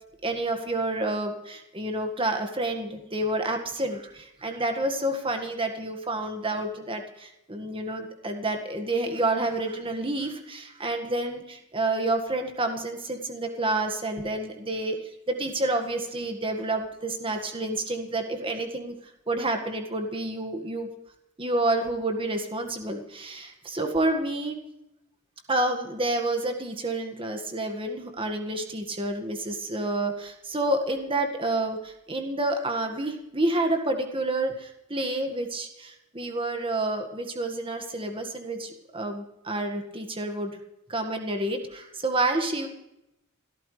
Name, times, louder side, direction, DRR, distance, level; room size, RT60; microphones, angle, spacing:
voice 1, 0.2-15.0 15.3-18.9 19.3-20.9 21.4-24.6 25.5-40.6 40.9-42.7, right 2 dB, 25° right, 5 dB, 1.8 m, -29 dB
28.0 x 13.5 x 3.3 m, 0.88 s
head